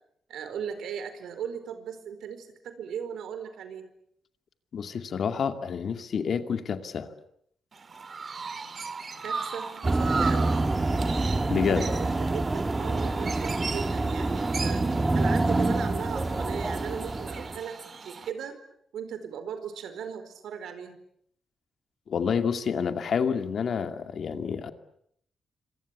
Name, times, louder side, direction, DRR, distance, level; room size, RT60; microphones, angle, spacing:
voice 1, 0.3-3.9 9.2-10.6 11.7-14.8 15.1-18.6 18.9-21.0, right 7 dB, 90° right, 10 dB, 4.6 m, -38 dB
voice 2, 4.7-7.1 11.4-11.9 22.1-24.7, left 6 dB, 55° left, 8 dB, 2.4 m, -28 dB
Chirp tweet, 7.7-18.3, right 4 dB, 40° right, 2.6 m, -38 dB
sound 1, 9.8-17.6, right 2 dB, 20° right, 1.6 m, -27 dB
26.5 x 26.0 x 8.4 m, 0.72 s
cardioid pair, 130°, 0 cm